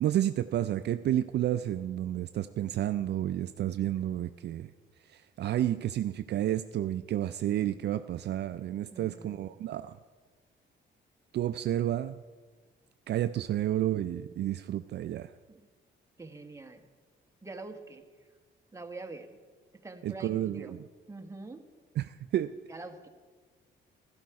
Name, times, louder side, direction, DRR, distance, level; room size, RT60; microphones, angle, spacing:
voice 1, 0.0-4.7 5.1-10.0 11.3-12.2 13.1-15.3 20.0-20.8 22.0-22.5, right 12 dB, 60° right, 11 dB, 0.4 m, -30 dB
voice 2, 8.9-9.4 15.5-15.6 16.2-16.8 17.4-18.0 18.7-19.3 19.8-20.8 21.1-21.6 22.7-23.1, right 3 dB, 15° right, 5 dB, 1.2 m, -44 dB
12.5 x 11.5 x 4.7 m, 1.5 s
cardioid pair, 90°, 20 cm